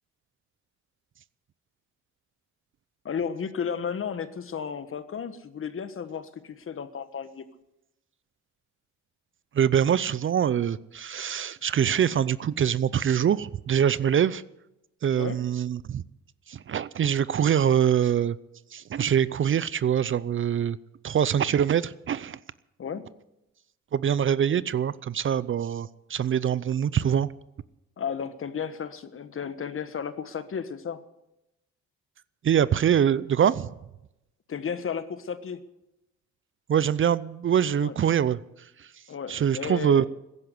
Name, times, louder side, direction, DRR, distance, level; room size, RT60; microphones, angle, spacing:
voice 1, 3.0-7.4 15.2-15.4 22.8-23.1 28.0-31.0 34.5-35.6 37.8-37.9 39.1-40.1, left 7 dB, 45° left, 1.4 m, -33 dB
voice 2, 9.5-14.4 15.0-16.0 16.5-18.4 18.7-20.8 21.0-22.4 23.9-27.3 32.4-33.7 36.7-38.4 38.8-38.9 39.3-40.1, right 9 dB, 40° right, 0.6 m, -24 dB
15.5 x 10.5 x 8.2 m
cardioid pair, 90°, 30 cm